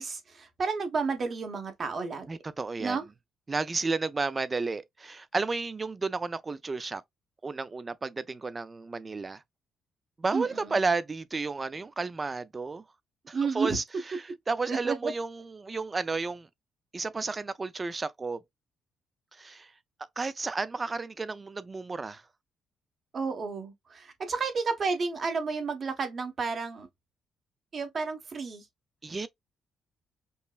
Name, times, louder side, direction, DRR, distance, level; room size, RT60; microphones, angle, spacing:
voice 1, 0.0-2.3 2.8-3.0 10.3-10.8 13.3-13.8 14.7-15.1 23.1-26.9 27.7-28.6, right 4 dB, 45° right, 1.0 m, -31 dB
voice 2, 2.3-3.0 3.5-7.0 7.4-9.4 10.2-12.8 13.3-16.5 16.9-18.4 19.3-19.7 20.2-22.2 29.0-29.3, right 4 dB, 30° right, 0.4 m, -32 dB
5.4 x 2.0 x 2.4 m
cardioid pair, 90°, 0 cm